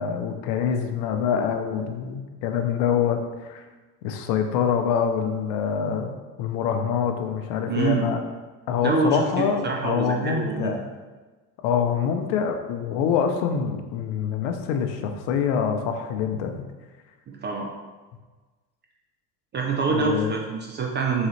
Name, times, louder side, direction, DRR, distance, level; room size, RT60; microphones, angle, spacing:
voice 1, 0.0-3.6 4.0-6.1 6.4-8.2 8.7-10.8 11.6-16.6 19.9-20.3, left 7 dB, 60° left, 6 dB, 0.7 m, -25 dB
voice 2, 7.7-8.1 8.8-10.8 17.3-17.7 19.5-21.3, right 4 dB, 25° right, 1 dB, 0.3 m, -25 dB
4.0 x 3.7 x 3.1 m, 1.3 s
hypercardioid pair, 80°, 49 cm